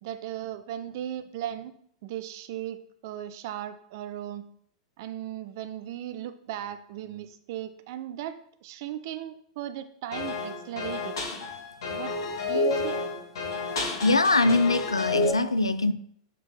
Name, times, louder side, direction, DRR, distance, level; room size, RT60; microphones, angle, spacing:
voice 1, 0.0-1.7 2.0-4.5 5.0-11.2 11.9-12.2 12.4-13.0, right 11 dB, 45° right, 11 dB, 0.5 m, -37 dB
sound 1, 10.1-15.3, left 3 dB, 55° left, 1.8 m, -30 dB
voice 2, 14.0-15.9, left 2 dB, 80° left, 14 dB, 0.4 m, -22 dB
7.0 x 4.2 x 3.2 m, 0.66 s
figure-of-eight pair, 95°, 3 cm